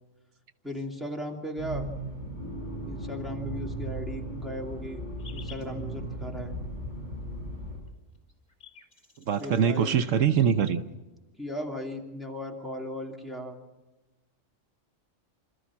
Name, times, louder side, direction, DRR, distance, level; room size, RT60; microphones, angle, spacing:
voice 1, 0.6-1.9 2.9-5.0 5.3-6.5 9.4-10.2 11.4-13.6, left 1 dB, ahead, 0 dB, 2.6 m, -37 dB
Accelerating revving vroom, 1.6-7.8, right 1 dB, 35° right, 5.4 m, -36 dB
sound 1, 5.2-5.7 7.9-8.0 8.1-10.5, left 6 dB, 40° left, 4.2 m, -51 dB
voice 2, 9.3-10.8, right 7 dB, 80° right, 10 dB, 1.2 m, -23 dB
26.5 x 14.0 x 7.3 m, 1.1 s
omnidirectional pair, 1.3 m